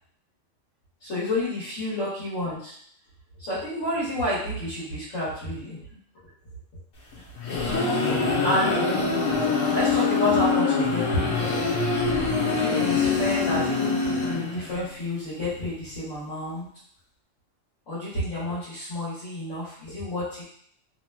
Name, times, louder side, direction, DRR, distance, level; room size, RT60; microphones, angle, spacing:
voice 1, 1.0-2.7 3.4-6.0 8.4-9.0 9.7-11.5 12.5-16.7 17.9-20.4, left 1 dB, 65° left, -12 dB, 1.6 m, -30 dB
sound 1, 7.1-14.8, left 4 dB, 80° left, 1.3 m, -24 dB
3.1 x 2.9 x 2.2 m, 0.63 s
omnidirectional pair, 1.3 m